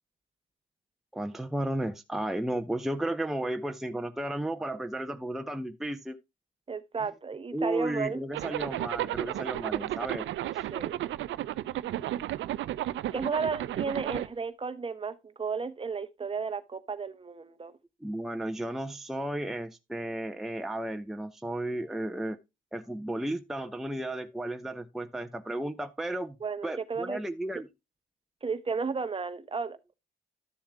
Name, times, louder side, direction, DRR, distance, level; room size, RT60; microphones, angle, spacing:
voice 1, 1.1-6.2 7.5-10.7 18.0-22.4 22.7-26.4 26.6-27.7, right 1 dB, ahead, 0.6 m, -34 dB
voice 2, 6.7-8.2 10.7-11.0 13.1-17.7 26.4-27.2 28.4-29.8, right 5 dB, 25° right, 0.8 m, -33 dB
Zipper (clothing), 8.3-14.3, right 13 dB, 70° right, 0.5 m, -33 dB
13.0 x 7.1 x 2.2 m
cardioid pair, 90°, 20 cm